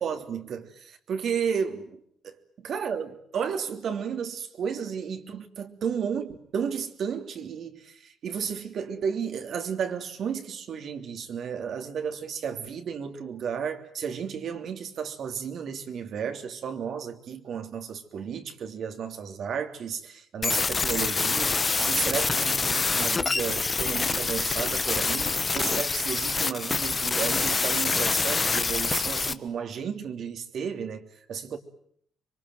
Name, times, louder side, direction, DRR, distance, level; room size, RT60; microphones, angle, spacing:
voice 1, 0.0-31.6, right 7 dB, 65° right, 3.2 m, -33 dB
sound 1, 20.4-29.3, left 4 dB, 30° left, 1.4 m, -26 dB
26.5 x 23.5 x 9.3 m
cardioid pair, 90°, 0 cm